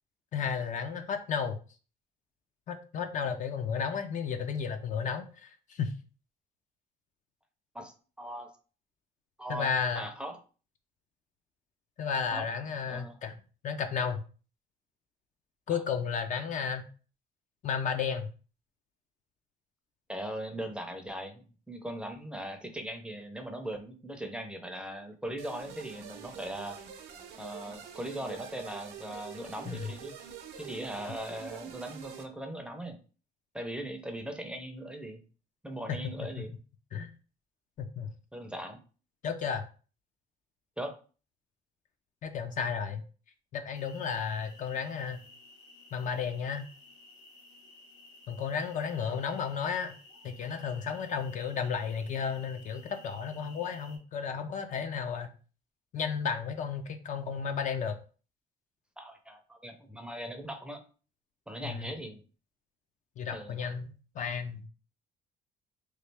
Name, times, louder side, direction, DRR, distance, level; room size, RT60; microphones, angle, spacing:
voice 1, 0.3-1.6 2.7-5.9 9.5-10.0 12.0-13.4 13.6-14.2 15.7-16.9 17.6-18.3 29.7-29.9 35.9-36.5 36.9-37.1 37.8-38.1 39.2-39.6 42.2-43.0 43.5-45.2 45.9-46.6 48.3-50.0 50.2-55.3 55.9-58.0 61.6-61.9 63.2-64.7, left 6 dB, 50° left, 7 dB, 0.4 m, -33 dB
voice 2, 7.7-8.5 9.4-9.7 9.9-10.4 12.3-12.5 12.9-13.2 15.7-15.8 20.1-26.8 27.4-30.1 30.6-33.0 33.5-35.2 35.6-36.5 38.3-38.8 40.8-40.9 59.0-60.8 61.5-62.2 63.3-63.6, right 1 dB, 5° right, 4 dB, 0.5 m, -39 dB
sound 1, 25.4-32.2, right 7 dB, 75° right, 0.7 m, -46 dB
sound 2, 43.7-54.0, left 2 dB, 90° left, 1.7 m, -55 dB
3.1 x 2.3 x 3.3 m, 0.37 s
cardioid pair, 110°, 17 cm